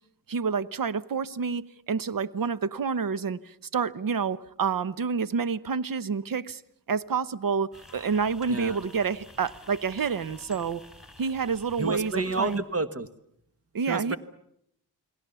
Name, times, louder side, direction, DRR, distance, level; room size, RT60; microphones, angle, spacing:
voice 1, 0.3-6.6 6.9-10.8 11.2-12.6 13.7-14.2, right 5 dB, 55° right, 1.1 m, -28 dB
sound 1, 7.7-12.6, left 2 dB, ahead, 4.3 m, -50 dB
voice 2, 11.8-13.1 13.9-14.2, right 3 dB, 35° right, 1.6 m, -29 dB
30.0 x 20.5 x 7.0 m
wide cardioid pair, 100°, 39 cm